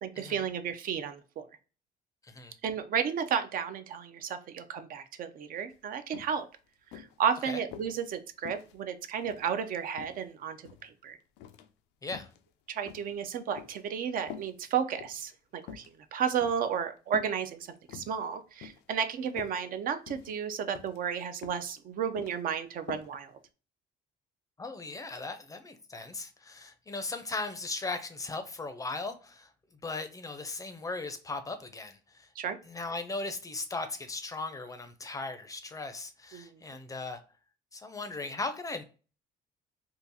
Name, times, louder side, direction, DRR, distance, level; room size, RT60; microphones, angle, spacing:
voice 1, 0.0-1.5 2.6-6.5 6.9-11.2 12.7-23.3 32.4-32.6 36.3-36.6, right 7 dB, 55° right, 0.4 m, -33 dB
voice 2, 2.2-2.5 7.5-7.6 12.0-12.3 24.6-29.5 29.8-32.3 32.7-37.2 37.7-38.8, left 3 dB, 20° left, 0.5 m, -38 dB
sound 1, 5.7-5.8 6.1-6.4 6.9-8.0 8.4-9.5 10.0-10.9 11.4-11.7 12.0-12.4 12.9-13.8 14.3-14.5 14.9-15.2 15.6-15.9 16.4-16.7 17.1-17.4 17.7-18.2 18.6-18.9 19.2-19.6 20.1-20.4 20.7-21.0 21.4-21.7 22.0-22.4 22.9-23.1 23.4-23.5, left 9 dB, 90° left, 0.4 m, -46 dB
3.8 x 2.3 x 2.6 m
cardioid pair, 110°, 17 cm